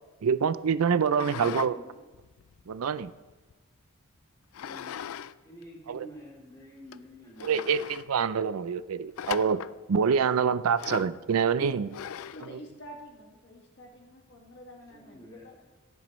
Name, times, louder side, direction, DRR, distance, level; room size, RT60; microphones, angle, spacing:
voice 1, 0.2-1.8 2.7-3.1 5.9-6.1 7.4-9.6 9.9-11.9, right 6 dB, 90° right, 15 dB, 0.4 m, -26 dB
sound 1, 1.1-1.7 2.1-3.5 4.5-5.3 5.6-5.7 6.4-6.5 6.9-7.0 7.4-8.1 9.2-9.8 10.8-11.2 11.9-12.5, left 9 dB, 80° left, 0.3 m, -38 dB
voice 2, 1.1-2.0 4.6-5.0 5.4-7.7 14.9-15.7, right 1 dB, 20° left, -5 dB, 3.2 m, -48 dB
voice 3, 12.3-15.6, equal, 50° left, 0 dB, 1.8 m, -47 dB
16.0 x 10.5 x 3.1 m, 1.2 s
head